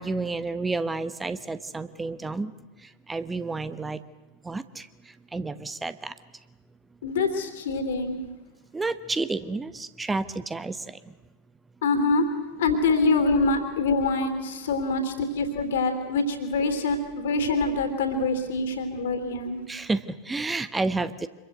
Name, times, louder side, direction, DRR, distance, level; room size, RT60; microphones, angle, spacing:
voice 1, 0.0-2.5 2.8-4.0 4.4-6.2 8.7-11.1 19.7-21.3, right 3 dB, 10° right, 14 dB, 1.0 m, -31 dB
voice 2, 7.0-8.2 11.8-12.2 12.6-19.6, left 3 dB, 60° left, 7 dB, 3.3 m, -25 dB
26.5 x 22.5 x 8.0 m, 1.1 s
figure-of-eight pair, 90°, 0 cm